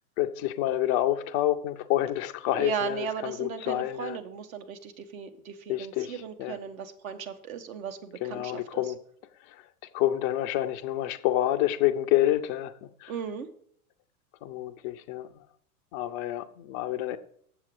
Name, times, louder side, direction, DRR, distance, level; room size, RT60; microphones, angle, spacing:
voice 1, 0.2-4.2 5.7-6.6 8.2-9.0 9.4-9.7 9.9-13.1 14.4-15.4 15.9-17.2, left 13 dB, 25° left, 8 dB, 0.3 m, -28 dB
voice 2, 2.5-8.8 13.1-13.5, right 7 dB, 65° right, 8 dB, 1.2 m, -36 dB
7.7 x 7.1 x 4.8 m, 0.65 s
hypercardioid pair, 100°, 45 cm